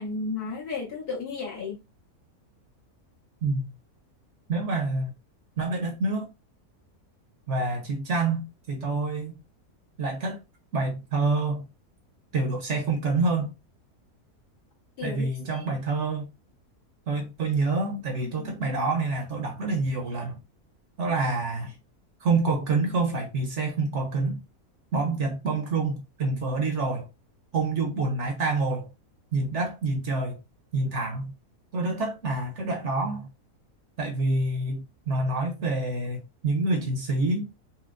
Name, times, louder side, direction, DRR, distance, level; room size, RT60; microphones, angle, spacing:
voice 1, 0.0-1.8 15.0-15.7 18.2-18.5, left 4 dB, 80° left, 1.9 m, -34 dB
voice 2, 4.5-5.1 5.6-6.3 7.5-9.4 10.0-10.4 10.7-11.7 12.3-13.5 15.0-16.3 17.1-20.4 21.0-21.7 22.2-24.4 24.9-27.1 27.5-28.9 29.3-30.4 30.7-31.3 31.7-33.3 34.0-37.5, right 3 dB, 55° right, 0.9 m, -27 dB
4.3 x 2.1 x 2.4 m
omnidirectional pair, 1.6 m